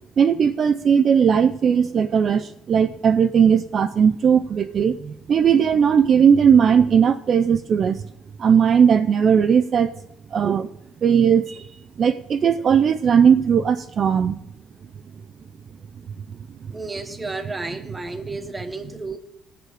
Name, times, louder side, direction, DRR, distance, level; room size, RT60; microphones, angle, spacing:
voice 1, 0.2-8.0 8.4-9.9 10.3-10.7 11.0-11.7 12.0-14.4, right 7 dB, 40° right, 0.4 m, -18 dB
voice 2, 16.7-19.2, right 3 dB, 15° right, 1.2 m, -32 dB
18.0 x 6.7 x 4.9 m
cardioid pair, 120°, 0 cm